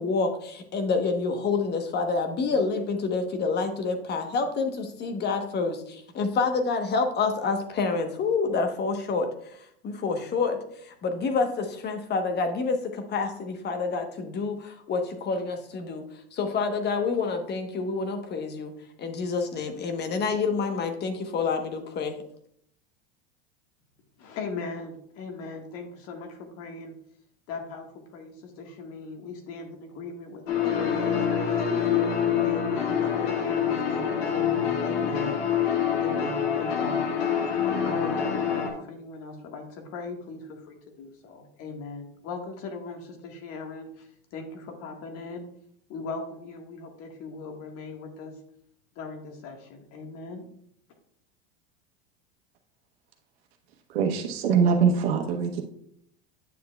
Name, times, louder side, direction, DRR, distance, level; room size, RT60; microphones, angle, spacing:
voice 1, 0.0-18.7 19.0-22.2, left 4 dB, 35° left, 6 dB, 1.1 m, -28 dB
voice 2, 24.2-27.0 27.5-31.2 31.8-35.4 36.0-37.5 37.8-45.5 45.9-48.4 48.9-50.5, left 3 dB, 50° left, 4 dB, 1.5 m, -39 dB
sound 1, 30.5-38.7, left 8 dB, 75° left, 1.6 m, -26 dB
voice 3, 53.9-55.6, right 6 dB, 80° right, 3 dB, 1.3 m, -23 dB
9.2 x 6.7 x 2.3 m, 0.69 s
hypercardioid pair, 105°, 30 cm